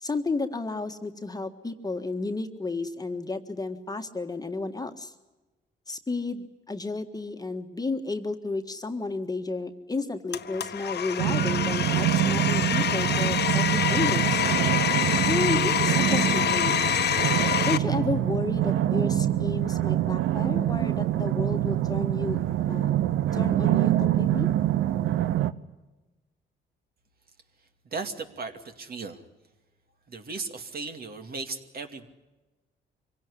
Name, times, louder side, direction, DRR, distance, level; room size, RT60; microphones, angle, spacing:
voice 1, 0.0-5.1 5.9-14.4 15.3-16.8 17.6-22.4 22.7-22.9 23.3-24.5, left 3 dB, 20° left, 5 dB, 1.6 m, -32 dB
Domestic sounds home sounds, 10.3-17.8, left 9 dB, 55° left, 1.3 m, -26 dB
sound 1, 11.2-25.5, right 13 dB, 85° right, 0.8 m, -25 dB
voice 2, 27.8-29.2 30.1-32.1, right 4 dB, 50° right, 6 dB, 2.5 m, -36 dB
24.5 x 17.0 x 9.9 m, 1.1 s
cardioid pair, 90°, 20 cm